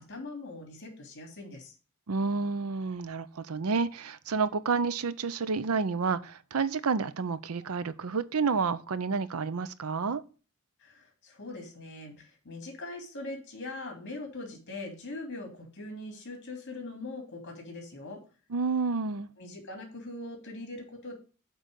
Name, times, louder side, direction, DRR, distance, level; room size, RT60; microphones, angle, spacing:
voice 1, 0.0-1.7 10.8-18.2 19.4-21.1, left 2 dB, 55° left, 3.1 m, -41 dB
voice 2, 2.1-10.2 18.5-19.3, right 4 dB, 80° right, 0.6 m, -30 dB
8.3 x 3.9 x 6.4 m
head